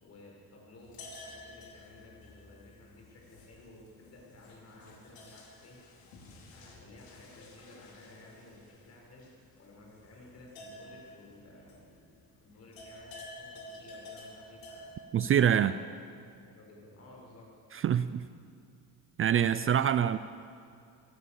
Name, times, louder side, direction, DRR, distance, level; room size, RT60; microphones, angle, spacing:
voice 1, 0.0-5.8 6.5-9.3 9.6-12.1 12.4-14.9 15.5-15.9 16.5-17.5, left 2 dB, 45° left, -2 dB, 6.9 m, -54 dB
sound 1, 0.8-12.3 12.5-14.9, left 2 dB, 75° left, 4.9 m, -51 dB
voice 2, 15.1-15.8 17.7-18.3 19.2-20.2, right 9 dB, 35° right, 13 dB, 0.5 m, -25 dB
26.5 x 16.0 x 7.1 m, 2.5 s
cardioid pair, 155°, 36 cm